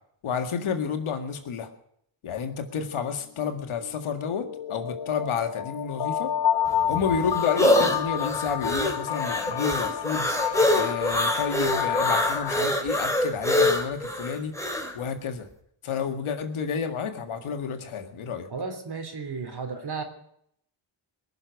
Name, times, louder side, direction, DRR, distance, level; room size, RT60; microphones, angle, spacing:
voice 1, 0.2-1.7 2.2-6.3 6.9-14.6 14.9-15.5 15.8-18.5, left 6 dB, 80° left, 6 dB, 2.0 m, -30 dB
sound 1, 3.0-3.1 3.4-12.6, left 9 dB, 55° left, 0.9 m, -29 dB
sound 2, 6.7-14.9, left 1 dB, 5° left, 3.6 m, -25 dB
voice 2, 18.5-20.0, right 4 dB, 50° right, 6 dB, 3.3 m, -33 dB
21.0 x 7.0 x 9.4 m, 0.71 s
cardioid pair, 65°, 49 cm